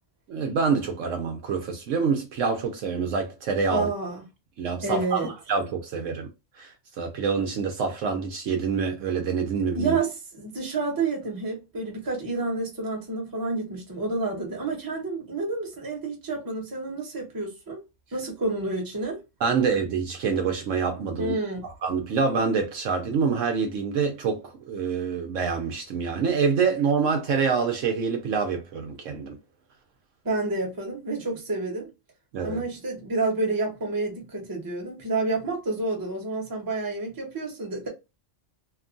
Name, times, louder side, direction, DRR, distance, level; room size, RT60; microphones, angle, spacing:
voice 1, 0.3-3.9 4.6-6.3 6.6-10.0 19.4-21.4 21.6-29.4 32.3-32.6, right 5 dB, 70° right, 0.9 m, -26 dB
voice 2, 3.7-4.2 4.8-5.3 9.7-17.8 18.1-19.2 21.2-21.6 30.2-31.9 32.4-37.9, right 3 dB, 20° right, 0.8 m, -29 dB
2.9 x 2.2 x 2.5 m
omnidirectional pair, 1.5 m